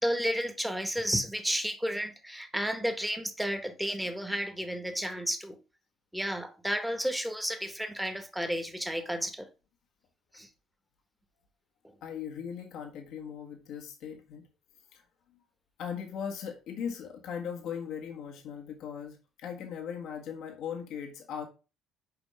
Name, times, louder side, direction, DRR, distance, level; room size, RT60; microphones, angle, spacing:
voice 1, 0.0-5.6 6.1-9.5 10.3-10.5, equal, 5° right, 1.6 m, -32 dB
voice 2, 12.0-14.5 14.9-15.0 15.8-21.4, left 7 dB, 60° left, 1.5 m, -39 dB
7.1 x 5.2 x 3.5 m
hypercardioid pair, 50°, 0 cm